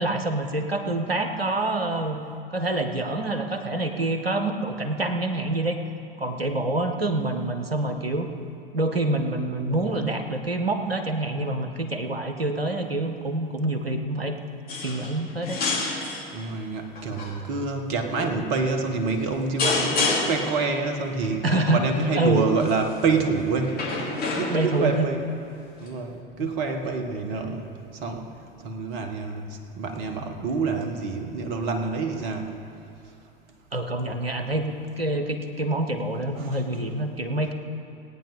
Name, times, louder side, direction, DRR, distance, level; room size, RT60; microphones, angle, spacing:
voice 1, 0.0-2.2 2.5-5.8 6.2-8.3 8.7-14.4 14.8-15.6 21.4-21.9 22.2-22.5 24.5-25.1 26.4-26.5 33.7-37.5, right 2 dB, 85° right, 7 dB, 1.1 m, -26 dB
sound 1, 14.7-15.2 15.4-16.2 16.9-17.3 18.2-18.4 19.6-20.5 22.6-22.9 23.7-24.8 25.9-26.0, left 3 dB, 30° left, 3.0 m, -27 dB
voice 2, 16.3-25.2 25.8-28.3 28.6-32.6 36.3-36.6, right 4 dB, 45° right, 5 dB, 1.6 m, -27 dB
18.5 x 9.1 x 5.5 m, 2.6 s
figure-of-eight pair, 80°, 29 cm